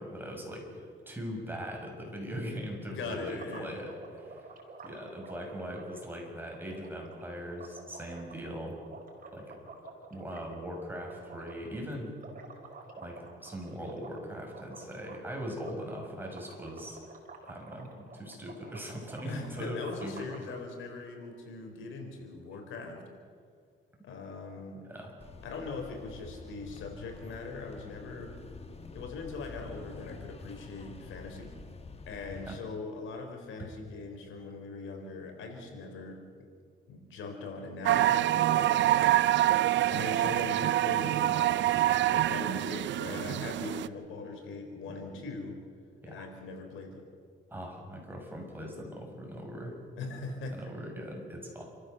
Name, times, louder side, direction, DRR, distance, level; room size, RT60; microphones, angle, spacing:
voice 1, 0.0-4.5 4.8-8.8 9.3-9.6 10.1-12.2 13.0-17.0 17.5-20.3 24.8-25.1 32.4-32.6 44.9-45.0 46.0-46.3 47.5-49.8 50.5-51.6, equal, 10° right, 0 dB, 6.4 m, -40 dB
voice 2, 2.9-3.8 19.2-23.0 24.0-24.8 25.4-28.3 28.9-31.5 32.1-36.2 36.9-41.7 42.1-45.6 46.0-47.0 50.0-50.6, left 3 dB, 80° left, 4 dB, 4.0 m, -41 dB
sound 1, 3.0-20.5, right 3 dB, 45° right, 4.5 m, -50 dB
sound 2, 25.2-32.6, left 3 dB, 30° left, 1.5 m, -47 dB
sound 3, 37.8-43.9, right 14 dB, 70° right, 0.6 m, -26 dB
29.0 x 14.5 x 6.9 m, 2.1 s
cardioid pair, 90°, 20 cm